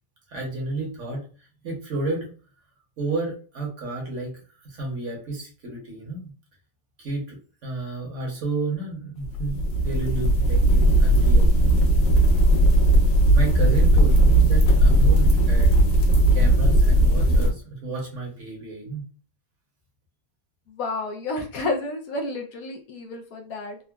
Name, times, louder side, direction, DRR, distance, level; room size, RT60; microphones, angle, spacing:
voice 1, 0.3-2.3 3.0-6.3 7.0-11.5 13.3-15.7 16.3-19.0, right 3 dB, 55° right, -1 dB, 1.0 m, -31 dB
sound 1, 9.2-17.5, right 1 dB, 85° left, 1.4 m, -17 dB
voice 2, 20.7-23.8, left 2 dB, 70° left, 1 dB, 0.9 m, -30 dB
3.7 x 2.0 x 2.2 m, 0.39 s
omnidirectional pair, 1.9 m